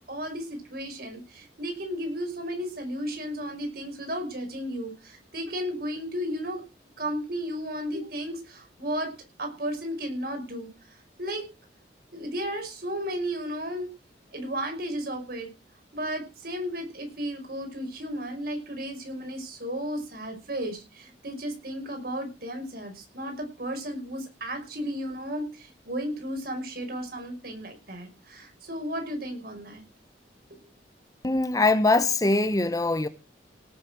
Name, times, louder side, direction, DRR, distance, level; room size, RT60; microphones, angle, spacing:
voice 1, 0.1-6.6 7.0-9.1 9.4-11.5 12.1-13.9 14.3-15.5 15.9-29.8, equal, 55° right, 5.6 m, -34 dB
voice 2, 31.2-33.1, left 2 dB, 20° left, 0.8 m, -22 dB
18.0 x 7.4 x 6.3 m
head